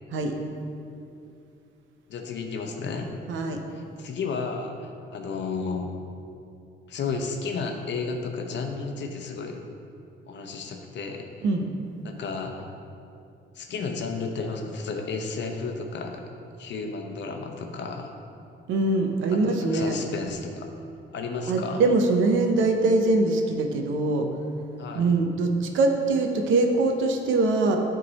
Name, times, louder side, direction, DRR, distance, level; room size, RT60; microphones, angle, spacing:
voice 1, 2.1-3.1 3.7-5.9 6.9-9.6 10.3-11.3 12.0-12.7 13.5-16.2 16.6-18.1 19.3-20.7 21.1-21.8 24.8-25.2, left 4 dB, 65° left, 4 dB, 0.8 m, -32 dB
voice 2, 3.3-3.6 11.4-11.7 18.7-20.0 21.5-24.3 24.9-27.8, right 3 dB, 80° right, 4 dB, 0.8 m, -23 dB
9.6 x 3.8 x 4.1 m, 2.6 s
cardioid pair, 90°, 20 cm